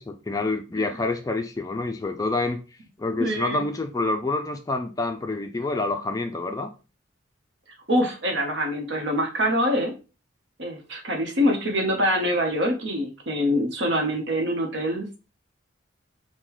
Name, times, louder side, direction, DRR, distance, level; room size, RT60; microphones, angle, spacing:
voice 1, 0.0-2.6 3.0-6.7, left 2 dB, 15° left, 5 dB, 0.3 m, -27 dB
voice 2, 3.2-3.6 7.9-9.9 10.6-15.2, equal, 65° right, 3 dB, 0.9 m, -24 dB
5.3 x 2.2 x 3.0 m, 0.32 s
head